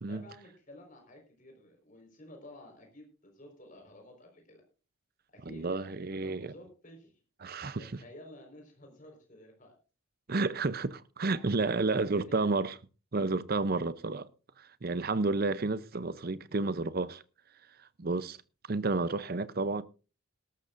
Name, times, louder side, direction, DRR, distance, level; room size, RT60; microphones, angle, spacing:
voice 1, 0.1-4.6 5.3-7.1 7.8-9.8 11.2-11.5 11.9-12.6, left 1 dB, 40° left, 4.6 m, -52 dB
voice 2, 5.5-6.5 7.4-7.9 10.3-12.8 13.1-14.3 14.6-17.2 17.8-18.4 18.7-19.8, right 3 dB, 45° right, 0.7 m, -31 dB
18.0 x 13.0 x 2.6 m
head